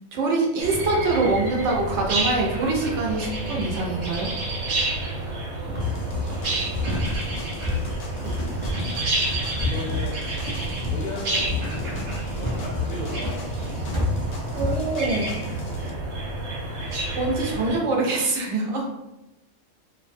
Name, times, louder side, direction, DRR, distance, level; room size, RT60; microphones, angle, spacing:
voice 1, 0.1-4.3 14.6-15.4 17.2-18.9, right 3 dB, 65° right, -1 dB, 0.9 m, -24 dB
sound 1, 0.6-17.8, right 2 dB, 90° right, 1.1 m, -29 dB
sound 2, 5.7-14.8, equal, 45° right, 0.4 m, -31 dB
sound 3, 5.8-15.9, left 6 dB, 80° left, 1.0 m, -34 dB
voice 2, 6.4-7.1 8.3-8.7 9.6-10.3 10.8-14.9, left 2 dB, 50° left, -5 dB, 0.5 m, -38 dB
2.5 x 2.2 x 2.5 m, 0.96 s
omnidirectional pair, 1.4 m